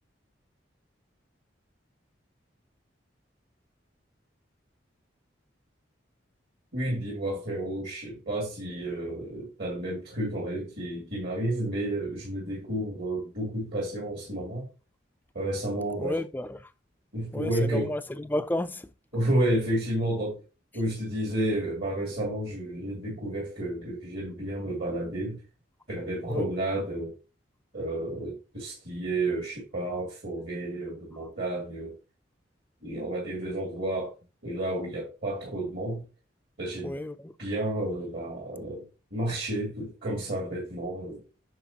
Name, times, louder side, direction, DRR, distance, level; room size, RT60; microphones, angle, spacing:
voice 1, 6.7-14.7 15.3-16.2 17.1-17.9 19.1-20.4 20.7-25.4 25.9-27.1 27.7-31.9 32.8-34.1 34.4-36.0 36.6-37.0 37.4-38.8 39.1-41.2, right 1 dB, 55° right, 2.5 m, -31 dB
voice 2, 16.0-16.7 17.3-18.9 26.3-26.5 36.8-37.3, left 1 dB, 10° left, 0.4 m, -32 dB
9.3 x 6.0 x 2.8 m
head